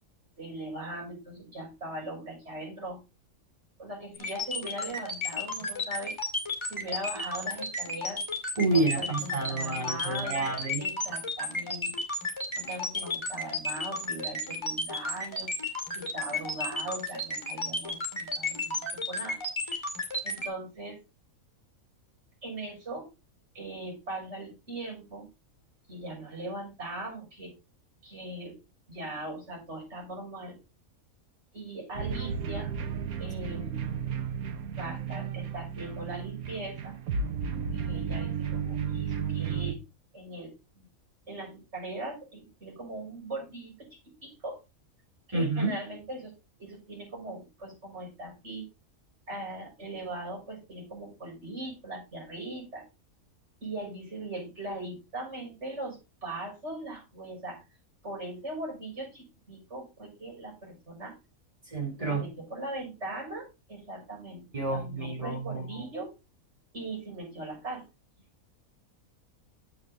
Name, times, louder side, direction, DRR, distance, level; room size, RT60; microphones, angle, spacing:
voice 1, 0.4-3.0 3.8-6.2 6.7-8.2 8.7-11.9 12.5-15.5 15.9-19.4 19.6-19.8 20.2-21.0 22.4-23.1 23.5-25.3 25.9-27.5 28.0-28.5 28.9-30.6 31.5-32.7 33.2-33.9 34.7-36.9 37.7-39.8 40.1-40.8 41.3-43.7 44.2-44.6 45.3-46.3 46.6-48.7 49.3-52.8 53.6-57.6 58.0-61.2 62.1-64.4 64.7-66.1 66.7-67.8, right 2 dB, 50° right, 7.2 m, -40 dB
sound 1, 4.1-20.5, left 2 dB, 20° left, 2.4 m, -32 dB
voice 2, 8.6-10.8 45.3-45.7 61.7-62.2 64.5-65.9, right 2 dB, 25° right, 3.1 m, -29 dB
sound 2, 31.9-39.7, right 6 dB, 85° right, 1.4 m, -33 dB
9.2 x 8.7 x 4.0 m
omnidirectional pair, 1.5 m